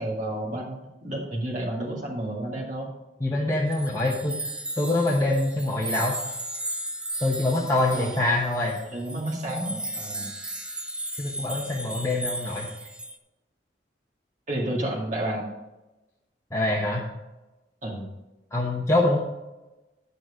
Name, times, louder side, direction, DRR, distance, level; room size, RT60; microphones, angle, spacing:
voice 1, 0.0-2.9 8.0-8.1 8.9-10.3 14.5-15.5 17.8-18.1, right 1 dB, 45° right, -3 dB, 2.2 m, -31 dB
voice 2, 3.2-4.4 4.8-6.2 7.2-8.8 11.2-12.7 16.5-17.0 18.5-19.2, left 2 dB, 15° left, -3 dB, 1.1 m, -24 dB
sound 1, 3.7-13.2, right 1 dB, 5° right, 0.5 m, -35 dB
9.7 x 6.9 x 5.0 m, 1.0 s
head